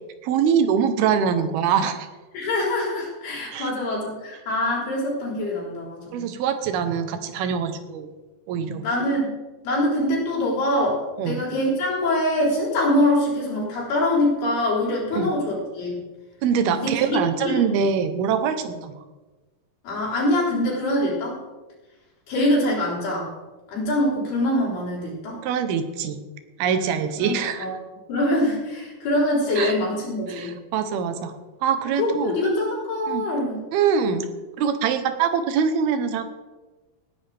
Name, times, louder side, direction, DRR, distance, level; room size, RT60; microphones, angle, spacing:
voice 1, 0.2-2.1 3.5-3.7 6.1-8.1 8.5-8.9 11.2-11.4 15.1-15.4 16.4-18.9 25.4-26.2 26.6-27.7 29.6-29.7 30.3-31.3 31.6-32.4 33.1-33.2 33.7-34.3 34.6-36.2, right 7 dB, 85° right, 9 dB, 2.9 m, -23 dB
voice 2, 2.3-6.3 8.8-9.3 9.6-16.0 16.7-17.7 18.6-18.7 19.8-21.4 22.3-23.3 23.7-25.4 26.6-27.7 28.1-30.6 32.0-33.6, left 1 dB, 90° left, -5 dB, 6.0 m, -24 dB
18.5 x 10.0 x 3.5 m, 1.2 s
omnidirectional pair, 4.3 m